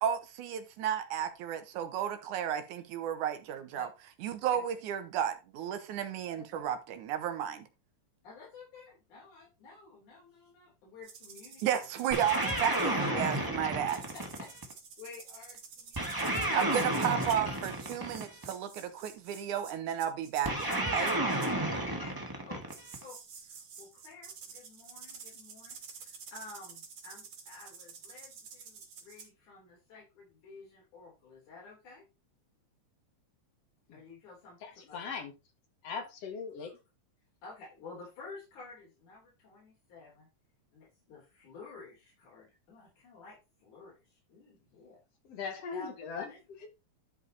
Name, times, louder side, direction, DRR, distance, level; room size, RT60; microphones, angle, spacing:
voice 1, 0.0-3.9 4.2-7.7 11.6-14.0 16.5-21.2, right 9 dB, 90° right, 2.6 m, -33 dB
voice 2, 8.2-11.9 14.4-14.5 15.0-17.0 21.9-22.6 23.0-23.2 23.4-32.0 33.9-35.1 35.9-36.0 36.6-36.7 37.4-40.3 40.7-45.0 45.7-46.4, left 4 dB, 85° left, 4.9 m, -52 dB
sound 1, 11.0-13.1 13.9-21.5 22.7-29.3, right 6 dB, 70° right, 3.5 m, -50 dB
sound 2, 12.1-14.7 15.9-18.5 20.4-23.0, right 1 dB, 10° right, 1.1 m, -32 dB
voice 3, 34.6-35.3 35.8-36.8 45.3-46.3 46.6-46.7, left 5 dB, 60° left, 2.4 m, -39 dB
11.5 x 5.0 x 4.0 m
omnidirectional pair, 3.4 m